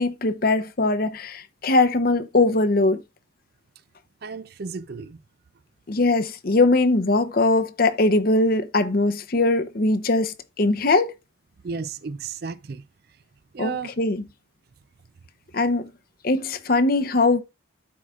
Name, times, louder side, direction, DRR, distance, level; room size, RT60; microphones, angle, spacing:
voice 1, 0.0-3.0 5.9-11.1 13.6-14.2 15.5-15.9 16.2-17.4, left 2 dB, 50° left, 0.7 m, -21 dB
voice 2, 4.2-5.2 11.6-12.8 13.5-13.9, right 5 dB, 50° right, 0.4 m, -33 dB
12.5 x 4.8 x 2.3 m
head